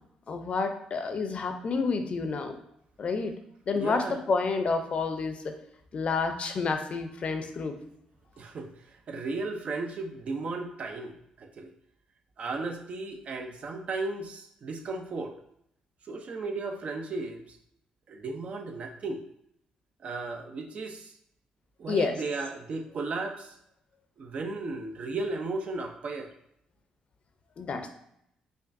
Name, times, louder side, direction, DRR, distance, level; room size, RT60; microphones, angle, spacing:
voice 1, 0.3-2.6 3.0-3.3 3.7-5.5 5.9-7.8 21.9-22.1 27.6-27.9, left 4 dB, 50° left, 7 dB, 0.5 m, -29 dB
voice 2, 3.7-4.2 8.4-11.7 12.4-15.4 16.0-17.6 18.1-19.2 20.0-21.1 21.8-23.5 24.2-26.3, right 3 dB, 55° right, 5 dB, 0.5 m, -35 dB
5.2 x 2.4 x 2.6 m, 0.74 s
cardioid pair, 75°, 3 cm